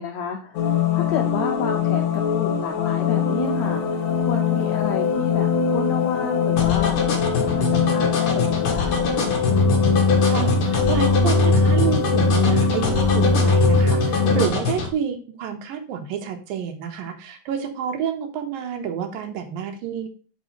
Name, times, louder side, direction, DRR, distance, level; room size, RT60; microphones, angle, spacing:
voice 1, 0.0-9.3, left 8 dB, 80° left, 4 dB, 1.6 m, -31 dB
sound 1, 0.5-14.5, left 4 dB, 60° left, 2.6 m, -21 dB
sound 2, 6.6-14.9, left 5 dB, 45° left, 2.1 m, -25 dB
voice 2, 10.2-20.1, right 8 dB, 80° right, 6 dB, 2.8 m, -29 dB
6.4 x 5.5 x 5.3 m, 0.40 s
omnidirectional pair, 4.0 m